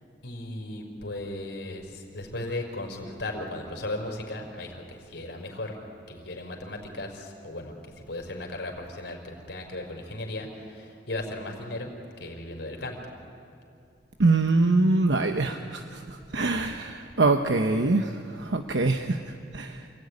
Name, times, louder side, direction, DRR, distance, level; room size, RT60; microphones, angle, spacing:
voice 1, 0.2-5.7 6.1-7.7 8.1-11.9 12.2-13.1, left 1 dB, 80° left, 2 dB, 4.9 m, -36 dB
voice 2, 14.2-19.2 19.5-19.8, right 3 dB, 80° right, 5 dB, 1.0 m, -24 dB
28.0 x 18.0 x 9.8 m, 2.5 s
head